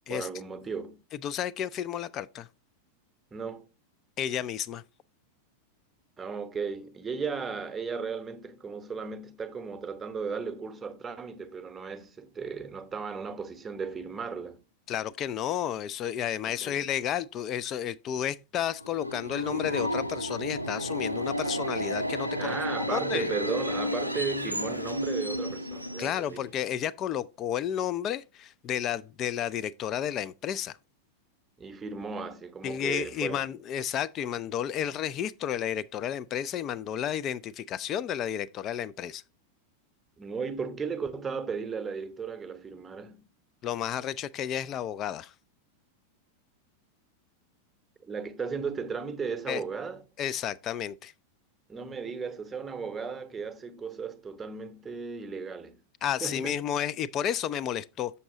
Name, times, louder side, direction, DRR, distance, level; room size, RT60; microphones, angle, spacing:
voice 1, 0.1-1.0 3.3-3.7 6.2-14.6 16.4-16.9 22.4-26.5 31.6-33.4 40.2-43.3 48.0-50.0 51.7-55.8 56.2-56.6, right 5 dB, 15° right, 0.9 m, -35 dB
voice 2, 1.2-2.5 4.2-4.8 14.9-22.6 22.9-23.3 26.0-30.7 32.6-39.2 43.6-45.3 49.5-49.6 50.2-51.1 56.0-58.1, left 10 dB, 30° left, 0.4 m, -32 dB
Subway metro underground, 18.7-26.5, equal, 90° right, 0.5 m, -32 dB
6.9 x 6.1 x 3.7 m
figure-of-eight pair, 90°, 0 cm